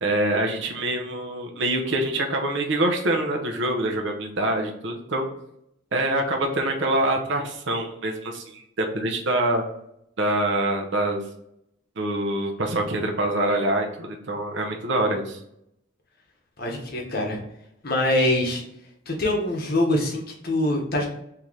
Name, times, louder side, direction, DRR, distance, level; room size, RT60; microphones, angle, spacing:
voice 1, 0.0-5.3 5.9-9.6 10.2-11.2 12.0-15.4, right 1 dB, 60° right, 2 dB, 0.7 m, -25 dB
voice 2, 16.6-17.4 17.8-18.6 19.1-21.1, left 1 dB, 45° left, 0 dB, 0.9 m, -24 dB
3.7 x 2.8 x 3.1 m, 0.78 s
head